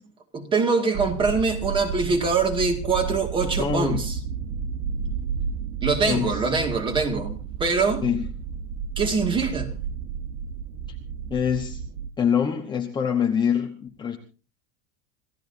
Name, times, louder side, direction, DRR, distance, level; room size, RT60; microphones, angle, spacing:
voice 1, 0.3-4.1 5.8-8.0 9.0-9.7, right 4 dB, 15° right, 2.2 m, -24 dB
sound 1, 0.9-12.1, right 6 dB, 40° right, 1.0 m, -32 dB
voice 2, 3.6-4.0 6.0-6.4 8.0-8.3 11.3-11.8 12.2-14.2, left 7 dB, 15° left, 1.1 m, -25 dB
28.0 x 15.5 x 2.8 m
supercardioid pair, 175°, 32 cm